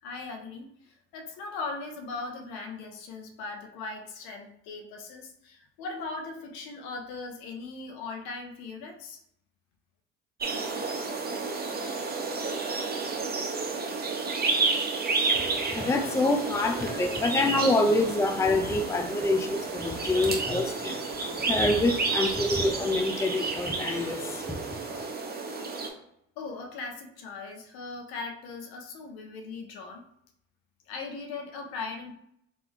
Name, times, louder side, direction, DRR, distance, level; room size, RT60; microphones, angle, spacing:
voice 1, 0.0-9.2 26.4-30.0 30.9-32.1, left 3 dB, 65° left, 4 dB, 0.9 m, -39 dB
sound 1, 10.4-25.9, right 4 dB, 25° right, 1.1 m, -31 dB
voice 2, 15.3-25.1, left 2 dB, 5° left, 5 dB, 0.5 m, -27 dB
3.5 x 2.9 x 3.5 m, 0.73 s
hypercardioid pair, 60°, 38 cm